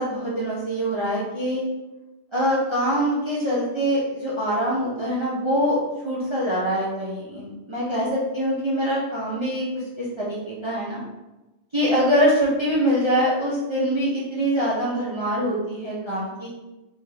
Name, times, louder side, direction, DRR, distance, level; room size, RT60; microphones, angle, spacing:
voice 1, 0.0-1.6 2.3-5.8 6.0-9.6 10.0-11.0 11.7-16.5, equal, 30° right, -7 dB, 0.6 m, -24 dB
3.8 x 2.6 x 3.3 m, 1.1 s
omnidirectional pair, 1.2 m